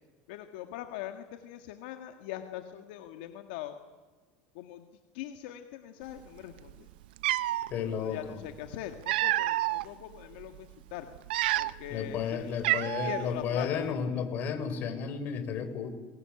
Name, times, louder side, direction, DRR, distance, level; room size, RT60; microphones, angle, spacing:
voice 1, 0.3-3.8 4.5-4.9 5.1-6.9 7.7-11.1 11.6-13.9, left 12 dB, 75° left, 6 dB, 1.7 m, -42 dB
Cat, 6.7-6.8 7.2-7.7 8.7-9.8 10.4-10.6 11.2-12.0 12.2-12.3 12.6-13.3, right 16 dB, 85° right, 0.7 m, -28 dB
voice 2, 7.7-8.2 11.9-15.9, left 7 dB, 40° left, 8 dB, 4.1 m, -32 dB
22.5 x 21.0 x 9.9 m, 1.3 s
supercardioid pair, 145°, 5 cm